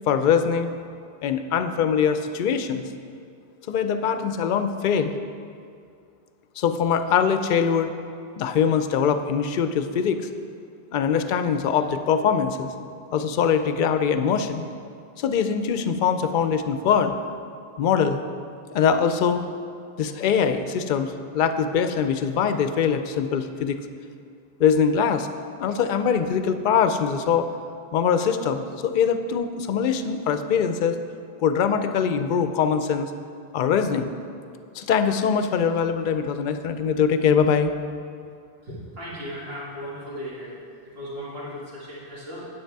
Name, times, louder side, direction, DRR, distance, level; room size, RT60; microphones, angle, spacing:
voice 1, 0.1-0.7 1.2-2.8 3.7-5.1 6.6-7.9 8.4-10.3 10.9-12.7 13.1-14.7 15.2-17.1 17.8-18.2 18.7-19.4 20.0-23.8 24.6-25.3 25.6-27.5 27.9-30.9 31.4-33.1 33.5-34.1 34.8-37.7, left 7 dB, 60° left, 9 dB, 0.6 m, -22 dB
voice 2, 38.6-42.5, equal, 70° right, -7 dB, 2.4 m, -37 dB
9.2 x 7.8 x 4.6 m, 2.4 s
omnidirectional pair, 1.0 m